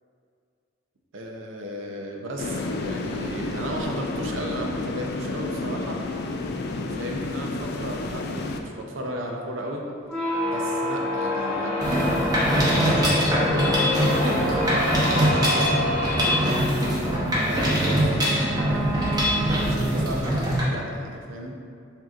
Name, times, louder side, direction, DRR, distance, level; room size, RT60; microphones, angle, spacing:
voice 1, 1.1-6.0 6.9-9.8 10.5-16.7 17.4-21.5, right 1 dB, 80° right, 1 dB, 0.6 m, -34 dB
sound 1, 2.4-8.6, left 2 dB, 55° left, 0.3 m, -31 dB
sound 2, 10.0-20.3, left 1 dB, 10° left, 1.3 m, -28 dB
Mechanisms, 11.8-20.6, equal, 20° right, 0.9 m, -23 dB
7.3 x 2.8 x 2.4 m, 2.3 s
head